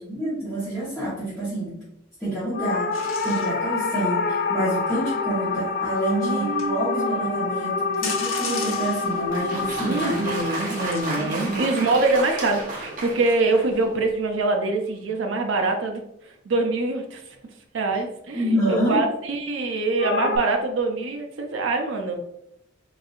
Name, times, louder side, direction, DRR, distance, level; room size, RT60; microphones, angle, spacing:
voice 1, 0.0-1.7 2.2-10.2 11.2-11.6 17.9-18.0 18.3-19.0, right 1 dB, ahead, -13 dB, 1.2 m, -27 dB
sound 1, 2.5-13.0 20.0-20.4, left 4 dB, 45° left, 0.4 m, -28 dB
sound 2, 2.9-4.7 6.4-6.7 7.0-7.1 7.6-7.7 7.9-9.4 9.8-9.9 10.7-11.0, left 4 dB, 80° left, 0.9 m, -34 dB
voice 2, 6.2-7.3 9.9-16.0 16.5-17.2 17.7-22.2, right 3 dB, 70° right, 3 dB, 0.5 m, -24 dB
Applause, 9.1-13.9, right 2 dB, 45° right, 0.8 m, -33 dB
3.9 x 2.8 x 2.4 m, 0.81 s
head